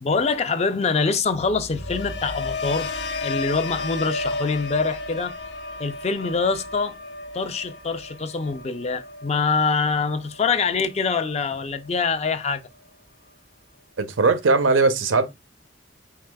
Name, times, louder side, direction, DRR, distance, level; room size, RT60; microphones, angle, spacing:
voice 1, 0.0-5.3 5.8-7.0 7.3-12.6, left 4 dB, 35° left, 0.3 m, -24 dB
sound 1, 1.3-11.4 11.8-12.2, left 3 dB, 60° left, 0.7 m, -33 dB
voice 2, 14.0-15.3, right 3 dB, 90° right, 0.6 m, -19 dB
4.7 x 3.8 x 2.2 m
head